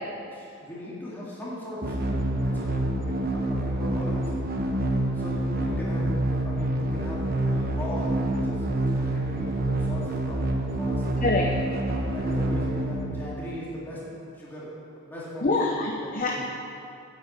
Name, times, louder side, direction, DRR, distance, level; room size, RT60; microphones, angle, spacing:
voice 1, 0.3-4.5 5.1-11.0 11.8-14.0 14.3-14.7 14.9-16.4, equal, 10° left, -8 dB, 3.1 m, -39 dB
sound 1, 1.8-13.7, right 1 dB, 40° right, 1.1 m, -27 dB
voice 2, 11.2-11.6 15.4-16.4, left 2 dB, 35° left, 0 dB, 0.8 m, -25 dB
9.4 x 9.3 x 8.3 m, 2.6 s
head